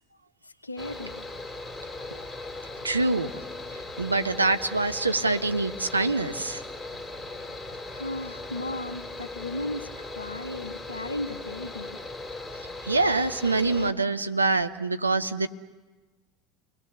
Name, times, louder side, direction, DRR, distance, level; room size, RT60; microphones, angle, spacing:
voice 1, 0.6-1.2 7.9-12.0, left 2 dB, 85° left, 11 dB, 1.1 m, -35 dB
Mechanical fan, 0.8-13.9, left 2 dB, 10° left, 3.2 m, -38 dB
voice 2, 2.8-3.3 4.0-6.6 12.8-15.5, right 3 dB, 85° right, 9 dB, 1.0 m, -25 dB
30.0 x 21.5 x 6.9 m, 1.3 s
figure-of-eight pair, 75°, 0 cm